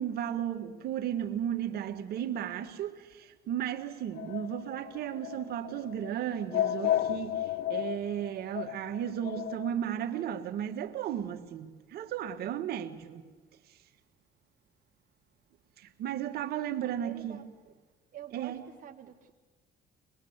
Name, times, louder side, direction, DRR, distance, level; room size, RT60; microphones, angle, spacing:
voice 1, 0.0-13.3 15.8-17.4 18.3-18.6, right 10 dB, 70° right, 1.7 m, -34 dB
sound 1, 4.1-9.7, left 12 dB, 75° left, 0.6 m, -33 dB
voice 2, 16.8-17.5 18.1-19.3, right 11 dB, 50° right, 1.1 m, -47 dB
23.5 x 20.5 x 8.1 m
cardioid pair, 110°, 17 cm